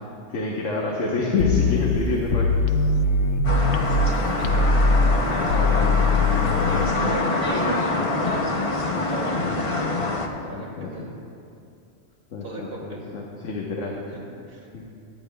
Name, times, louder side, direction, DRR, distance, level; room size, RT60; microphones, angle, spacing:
voice 1, 0.3-2.6 4.5-4.6 5.3-7.2 10.5-11.1 12.3-14.0 14.7-14.9, left 3 dB, 85° left, -2 dB, 1.4 m, -29 dB
sound 1, 1.4-4.1 4.4-6.9, left 3 dB, 70° left, 1.0 m, -21 dB
sound 2, 3.4-10.3, left 2 dB, 30° left, 0.8 m, -25 dB
voice 2, 4.3-4.9 5.5-5.7 6.6-9.8 10.4-11.1 12.4-13.1 14.1-14.2 14.5-14.7, right 2 dB, 55° right, -4 dB, 2.6 m, -37 dB
22.0 x 10.5 x 2.3 m, 2.6 s
omnidirectional pair, 1.2 m